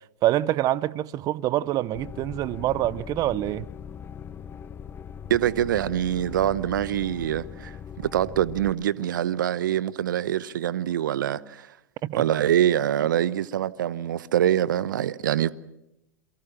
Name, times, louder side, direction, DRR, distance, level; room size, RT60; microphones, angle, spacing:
voice 1, 0.2-3.7 12.0-12.2, right 14 dB, 35° right, 0.8 m, -25 dB
sound 1, 1.9-8.7, left 7 dB, 20° left, 0.8 m, -40 dB
voice 2, 5.3-11.7 12.1-15.5, right 11 dB, 70° right, 0.9 m, -24 dB
28.5 x 23.0 x 6.2 m
hypercardioid pair, 105°, 11 cm